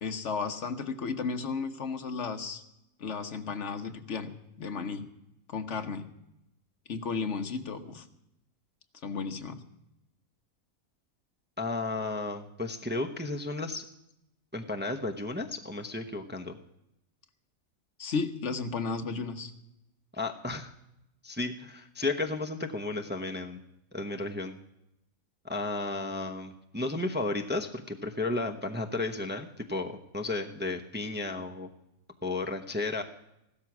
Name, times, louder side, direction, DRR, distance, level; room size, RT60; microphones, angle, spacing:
voice 1, 0.0-2.6 3.0-5.1 5.5-6.1 6.9-8.0 9.0-9.6 18.0-19.5, left 5 dB, 60° left, 6 dB, 1.4 m, -34 dB
voice 2, 11.6-13.8 14.5-16.6 20.1-20.7 21.2-23.6 23.9-24.6 25.4-31.7 32.2-33.0, left 2 dB, 10° right, 4 dB, 0.6 m, -33 dB
15.5 x 13.0 x 6.0 m, 0.85 s
omnidirectional pair, 1.4 m